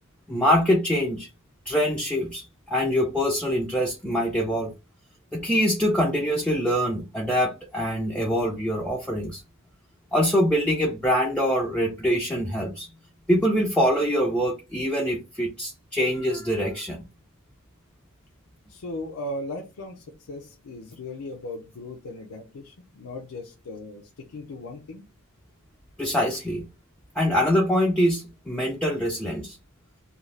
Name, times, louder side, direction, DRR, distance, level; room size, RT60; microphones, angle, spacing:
voice 1, 0.3-1.3 1.7-4.7 5.3-9.4 10.1-12.9 13.3-17.0 26.0-26.6 27.2-29.6, equal, 5° left, -1 dB, 0.3 m, -24 dB
voice 2, 18.7-25.1, left 1 dB, 80° left, 2 dB, 0.5 m, -37 dB
2.5 x 2.3 x 3.1 m, 0.28 s
head